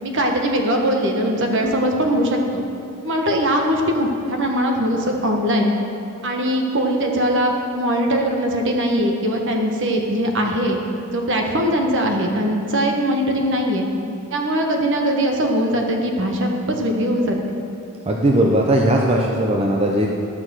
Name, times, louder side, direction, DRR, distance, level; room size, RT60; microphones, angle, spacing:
voice 1, 0.0-2.6 3.0-5.7 6.2-10.8 11.1-13.9 14.3-17.4, equal, 55° right, 2 dB, 1.2 m, -21 dB
sound 1, 1.6-5.2, equal, 60° left, 1.1 m, -38 dB
voice 2, 18.1-20.1, right 1 dB, 25° right, 0 dB, 0.6 m, -18 dB
12.0 x 6.0 x 6.2 m, 2.6 s
head